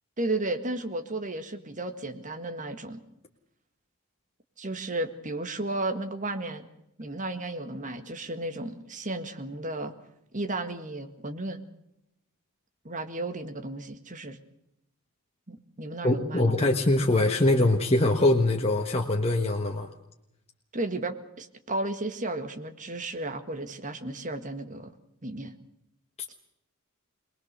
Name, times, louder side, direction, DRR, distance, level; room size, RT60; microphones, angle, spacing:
voice 1, 0.2-3.0 4.6-6.6 7.0-9.9 10.3-11.6 12.8-14.4 15.5-16.6 20.7-24.9 25.2-25.5, right 2 dB, 35° right, 7 dB, 1.8 m, -33 dB
voice 2, 16.0-19.9, left 2 dB, 25° left, 2 dB, 1.4 m, -23 dB
23.5 x 20.5 x 6.8 m, 0.83 s
head